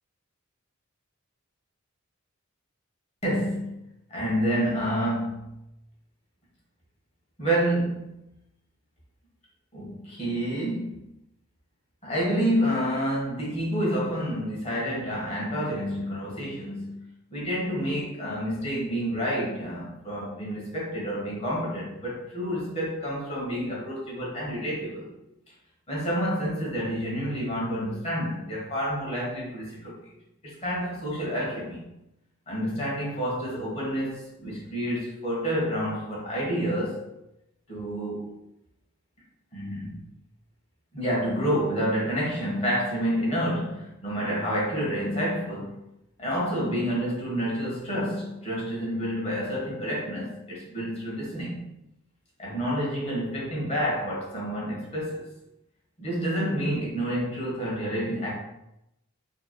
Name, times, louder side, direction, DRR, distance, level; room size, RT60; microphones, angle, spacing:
voice 1, 3.2-3.7 4.1-5.5 7.4-8.2 9.7-11.0 12.0-17.0 17.3-25.1 25.9-30.0 30.4-31.9 32.5-37.0 37.7-38.2 39.5-40.0 40.9-45.7 46.2-51.7 52.4-55.3 56.0-58.3, equal, 30° left, -5 dB, 1.3 m, -29 dB
5.3 x 2.9 x 2.2 m, 0.87 s
head